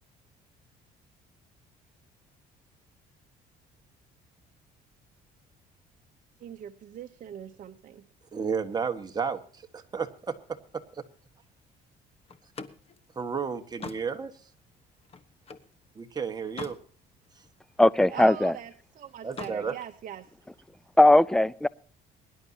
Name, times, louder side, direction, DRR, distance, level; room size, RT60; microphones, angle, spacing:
voice 1, 6.4-8.1 18.1-20.3, right 10 dB, 50° right, 0.9 m, -42 dB
voice 2, 8.3-10.8 13.1-14.3 15.9-16.8 19.2-19.7, right 6 dB, 25° right, 1.6 m, -32 dB
Slam, 12.3-15.7 16.2-16.9 17.3-18.4 19.2-19.6, left 5 dB, 35° left, 1.2 m, -44 dB
voice 3, 17.8-18.6 21.0-21.7, left 1 dB, 5° left, 0.5 m, -19 dB
23.0 x 11.0 x 2.8 m
cardioid pair, 110°, 17 cm